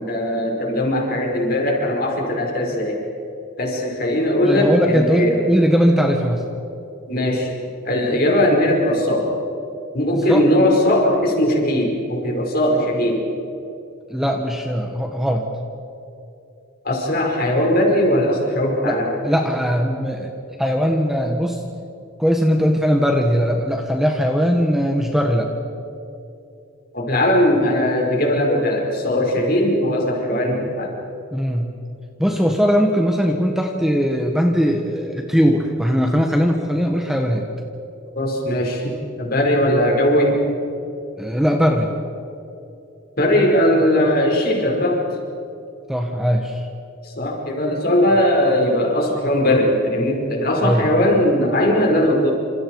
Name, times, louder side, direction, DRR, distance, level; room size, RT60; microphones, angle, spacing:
voice 1, 0.0-3.0 3.6-5.4 7.1-7.6 7.8-9.3 9.9-13.2 16.8-19.1 26.9-30.9 38.2-40.4 43.2-45.0 47.0-52.3, left 1 dB, 45° left, 0 dB, 5.3 m, -19 dB
voice 2, 4.4-6.4 10.3-10.4 14.1-15.4 18.8-20.3 20.6-21.6 22.2-25.5 31.3-31.7 32.2-37.4 41.2-41.9 45.9-46.7 50.6-51.0, equal, ahead, 2 dB, 1.4 m, -19 dB
28.5 x 27.5 x 4.8 m, 2.8 s
head